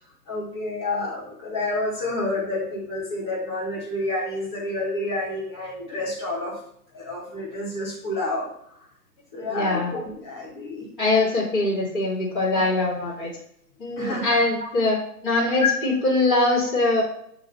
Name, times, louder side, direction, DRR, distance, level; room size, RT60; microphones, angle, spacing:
voice 1, 0.3-6.6 6.9-8.5 9.3-10.9 14.0-14.4 15.6-15.7, left 2 dB, 15° left, -7 dB, 1.3 m, -29 dB
voice 2, 9.5-9.9 11.0-13.3 13.8-15.0 15.2-17.0, left 2 dB, ahead, -21 dB, 1.0 m, -22 dB
8.5 x 2.9 x 3.9 m, 0.71 s
hypercardioid pair, 170°, 50 cm